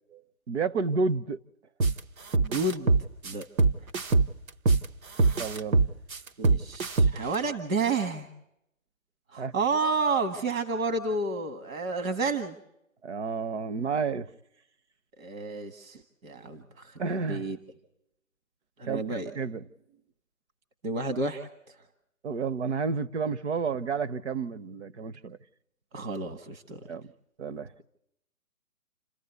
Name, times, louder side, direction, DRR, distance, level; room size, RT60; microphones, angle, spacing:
voice 1, 0.5-1.4 5.4-5.9 9.4-9.5 13.0-14.3 17.0-17.5 18.8-19.6 22.2-25.4 26.9-27.1 27.4-27.7, right 5 dB, 55° right, 0.8 m, -31 dB
sound 1, 1.8-2.0 2.3-4.8 5.2-7.3, right 3 dB, 90° right, 1.2 m, -22 dB
voice 2, 2.4-2.9 3.2-3.4 6.4-8.3 9.3-12.6 15.2-17.6 18.8-19.3 20.8-21.7 25.9-26.8, right 3 dB, 70° right, 1.7 m, -30 dB
28.5 x 14.5 x 8.1 m
hypercardioid pair, 170°, 41 cm